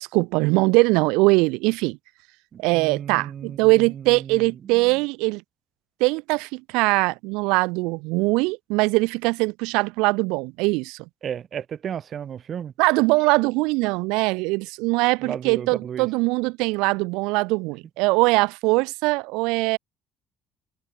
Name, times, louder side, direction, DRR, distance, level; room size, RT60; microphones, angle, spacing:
voice 1, 0.1-2.0 2.6-5.4 6.0-11.0 12.8-19.8, right 26 dB, 85° right, 0.4 m, -21 dB
voice 2, 2.5-5.0 11.2-12.7 15.2-16.1, right 8 dB, 50° right, 0.9 m, -34 dB
supercardioid pair, 80°, 0 cm